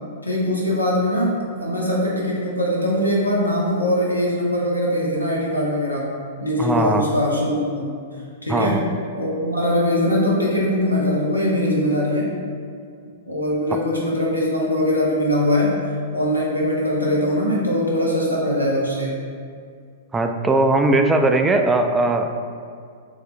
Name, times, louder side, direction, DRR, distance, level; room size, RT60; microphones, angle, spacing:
voice 1, 0.2-8.0 8.4-8.9 9.2-12.3 13.3-15.7 16.1-19.1, left 1 dB, 90° left, -4 dB, 0.8 m, -21 dB
voice 2, 6.6-7.0 8.5-8.8 20.1-22.3, right 2 dB, 10° right, 5 dB, 0.3 m, -19 dB
4.8 x 3.1 x 3.3 m, 2.2 s
figure-of-eight pair, 105°, 0 cm